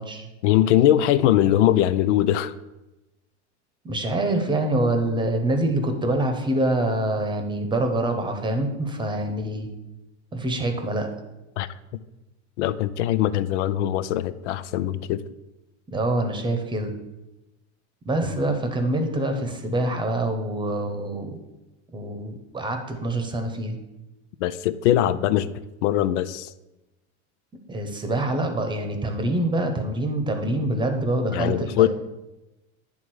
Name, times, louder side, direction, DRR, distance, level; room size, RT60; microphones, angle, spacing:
voice 1, 0.4-2.5 11.6-12.0 12.6-15.2 24.4-25.5 25.8-26.5 31.3-31.9, left 12 dB, 90° left, 14 dB, 0.5 m, -21 dB
voice 2, 3.8-9.7 10.3-11.1 15.9-16.9 18.0-21.4 21.9-23.8 27.7-31.9, right 1 dB, 15° right, 6 dB, 0.8 m, -25 dB
9.4 x 3.6 x 6.2 m, 1.0 s
supercardioid pair, 140°, 35 cm